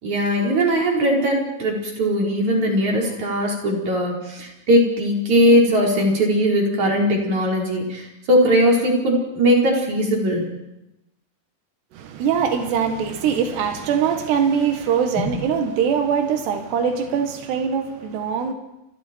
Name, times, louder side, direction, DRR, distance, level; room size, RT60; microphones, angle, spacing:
voice 1, 0.0-10.4 15.2-15.3, equal, 45° right, 5.9 m, -19 dB
voice 2, 11.9-18.5, right 7 dB, 90° right, 3.8 m, -22 dB
30.0 x 26.0 x 4.6 m
omnidirectional pair, 4.7 m